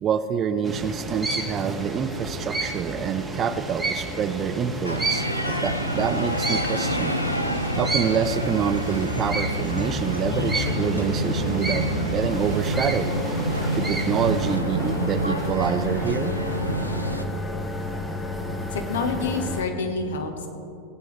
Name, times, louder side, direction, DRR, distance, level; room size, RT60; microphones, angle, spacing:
voice 1, 0.0-7.2 7.8-13.1 13.7-16.3, right 7 dB, 30° right, 11 dB, 0.5 m, -26 dB
sound 1, 0.6-14.6, right 2 dB, 10° right, 1.2 m, -31 dB
sound 2, 4.8-17.3, equal, 90° left, 0.6 m, -28 dB
sound 3, 8.2-19.6, left 1 dB, 10° left, 1.0 m, -32 dB
voice 2, 18.7-20.5, left 4 dB, 60° left, 4 dB, 1.3 m, -28 dB
18.0 x 8.6 x 3.3 m, 2.6 s
figure-of-eight pair, 90°, 0 cm